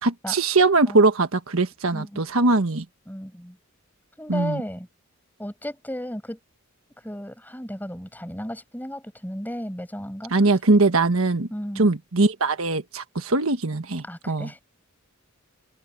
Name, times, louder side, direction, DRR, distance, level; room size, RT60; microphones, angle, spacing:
voice 1, 0.0-2.8 4.3-4.6 10.3-11.5 11.8-14.5, right 3 dB, 75° right, 1.4 m, -21 dB
voice 2, 1.9-2.2 3.1-3.6 4.2-4.9 5.4-6.4 7.0-10.3 11.5-12.0 14.0-14.6, equal, 10° left, 7.0 m, -34 dB
head